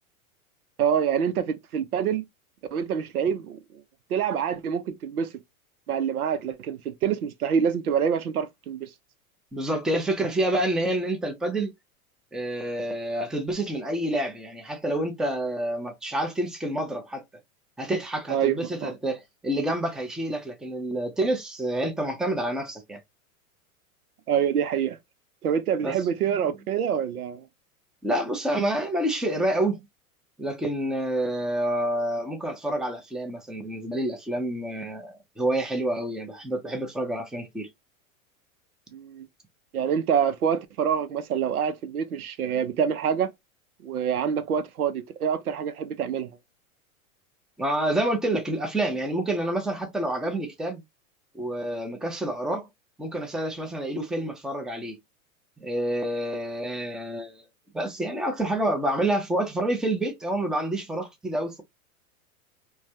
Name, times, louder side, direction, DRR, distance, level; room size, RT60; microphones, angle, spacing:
voice 1, 0.8-2.2 2.7-3.8 4.1-5.3 5.9-8.9 18.3-18.6 18.8-18.9 24.3-25.0 25.4-27.4 38.9-39.3 39.7-43.3 43.8-46.3, right 8 dB, 90° right, 0.7 m, -26 dB
voice 2, 9.5-11.7 12.3-17.2 17.8-23.0 25.8-26.5 28.0-29.8 30.4-37.7 47.6-50.8 51.3-52.7 53.0-55.0 55.6-57.4 57.7-61.6, right 1 dB, ahead, 0.5 m, -28 dB
3.2 x 2.2 x 2.6 m
hypercardioid pair, 105°, 43 cm